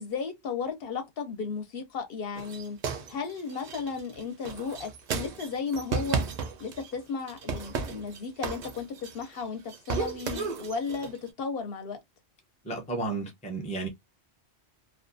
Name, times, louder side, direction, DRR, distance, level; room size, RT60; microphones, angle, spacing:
voice 1, 0.0-2.8 3.1-6.2 6.6-12.0, left 5 dB, 65° left, 0.8 m, -34 dB
sound 1, 2.3-7.0 7.3-9.4 9.7-11.2, right 5 dB, 55° right, 0.5 m, -34 dB
voice 2, 12.7-13.9, right 3 dB, 10° left, 0.4 m, -32 dB
2.4 x 2.2 x 2.5 m
omnidirectional pair, 1.1 m